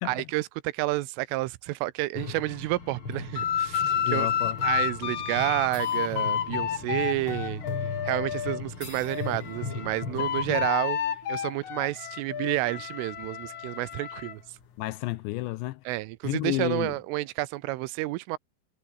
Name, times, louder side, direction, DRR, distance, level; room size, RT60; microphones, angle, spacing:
voice 1, 0.1-4.3 4.6-7.6 8.0-11.0 11.3-14.4 15.9-18.4, right 19 dB, 85° right, 3.4 m, -30 dB
sound 1, 2.1-10.7, left 4 dB, 30° left, 4.3 m, -38 dB
sound 2, 3.4-8.6 9.0-14.3, left 9 dB, 50° left, 2.6 m, -30 dB
sound 3, 3.9-14.0, right 6 dB, 55° right, 6.9 m, -57 dB
voice 2, 4.0-4.6 10.2-10.6 14.8-15.8 16.2-17.0, left 19 dB, 85° left, 2.7 m, -31 dB
omnidirectional pair, 5.7 m